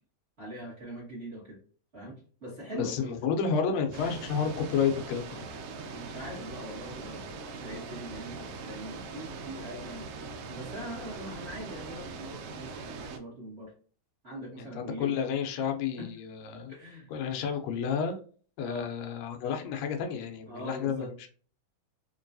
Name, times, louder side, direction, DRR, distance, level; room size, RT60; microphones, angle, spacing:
voice 1, 0.4-1.6 1.9-2.1 2.4-3.2 5.9-13.7 14.2-15.1 15.4-15.7 16.0-16.1 16.7-17.1 18.6-18.9 20.4-21.1, equal, 30° right, -6 dB, 1.4 m, -42 dB
voice 2, 2.7-5.4 14.6-16.7 17.1-18.2 18.6-21.3, left 6 dB, 75° left, 4 dB, 1.7 m, -31 dB
sound 1, 3.9-13.2, right 4 dB, 85° right, 1.3 m, -41 dB
4.5 x 2.9 x 2.6 m, 0.42 s
omnidirectional pair, 3.4 m